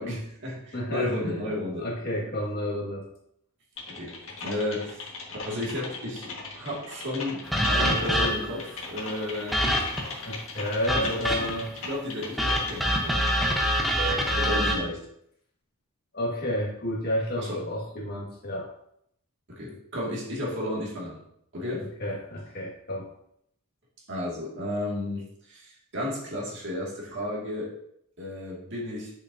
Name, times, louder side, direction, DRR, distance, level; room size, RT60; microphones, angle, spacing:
voice 1, 0.0-1.9 3.9-5.1 5.5-9.6 10.9-11.5 11.9-13.2 14.4-15.0 17.4-17.6 19.5-21.2 21.5-21.9 24.1-27.7 28.2-29.1, left 1 dB, 55° right, -4 dB, 2.1 m, -33 dB
voice 2, 0.7-1.4 1.8-3.1 10.2-11.7 13.8-14.3 16.1-18.7 22.0-23.1, equal, 45° left, -2 dB, 1.8 m, -31 dB
Typing, 3.8-13.7, left 3 dB, 60° left, 1.7 m, -39 dB
sound 1, 7.5-8.6 9.5-10.1 10.9-11.7 12.4-14.8, equal, ahead, 0.9 m, -25 dB
8.3 x 6.7 x 2.7 m, 0.73 s
head